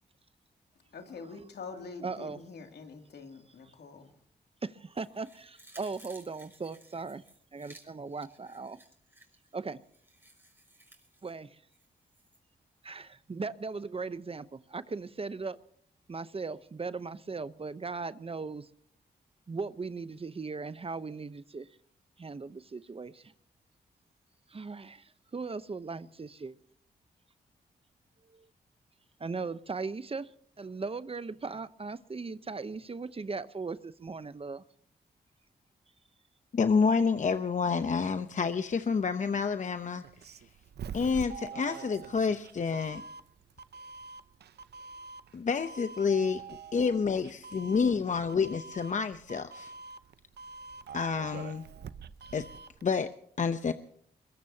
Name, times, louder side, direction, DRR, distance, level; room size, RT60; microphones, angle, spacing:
voice 1, 0.9-4.1, left 4 dB, 80° left, 4 dB, 2.7 m, -45 dB
voice 2, 2.0-2.4 4.6-7.2 7.5-8.8 9.5-9.8 11.2-11.6 12.8-15.6 16.1-18.7 19.5-21.7 22.2-23.3 24.5-26.6 28.3-28.5 29.2-30.3 30.6-34.6, right 4 dB, 35° right, 14 dB, 0.8 m, -38 dB
sound 1, 4.9-12.4 12.8-12.9, right 1 dB, 15° right, 5.9 m, -58 dB
voice 3, 36.5-40.4 40.9-43.0 45.3-46.4 46.7-49.7 50.9-51.6 52.3-52.5 52.8-53.7, left 5 dB, 45° left, 10 dB, 0.8 m, -29 dB
Doorbell, 40.0-52.8, right 5 dB, 75° right, 0.7 m, -45 dB
22.0 x 21.5 x 2.9 m, 0.65 s
cardioid pair, 65°, 17 cm